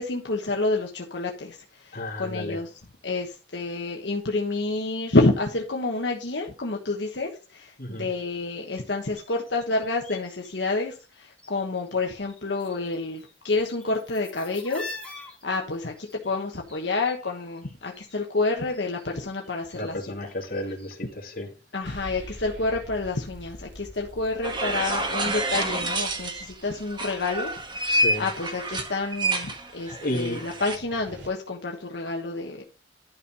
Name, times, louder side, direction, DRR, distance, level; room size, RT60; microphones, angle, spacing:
voice 1, 0.0-14.9 15.4-20.0 21.7-32.6, left 3 dB, 70° left, 1.3 m, -29 dB
voice 2, 1.9-2.6 7.8-8.1 19.7-21.5 27.9-28.3 30.0-30.4, left 1 dB, 50° left, 2.4 m, -32 dB
sound 1, 7.9-10.7 10.9-12.0 12.2-18.2 18.4-21.5 21.8-21.9, left 2 dB, 5° left, 2.8 m, -46 dB
sound 2, 21.8-31.3, equal, 80° right, 3.4 m, -47 dB
sound 3, 24.4-26.5 26.9-30.8, right 2 dB, 25° right, 1.5 m, -28 dB
11.5 x 5.5 x 4.3 m
head